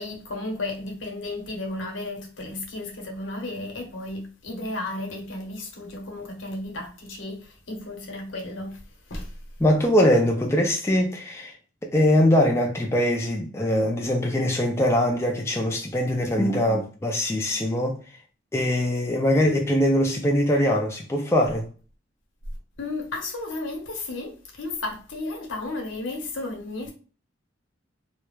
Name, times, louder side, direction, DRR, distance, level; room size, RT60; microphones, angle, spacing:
voice 1, 0.0-8.8 9.1-9.4 22.8-26.9, left 2 dB, 85° left, 0.8 m, -33 dB
voice 2, 9.6-11.5 11.8-18.0 18.5-21.7, left 1 dB, 15° left, 0.3 m, -22 dB
2.3 x 2.1 x 3.0 m
head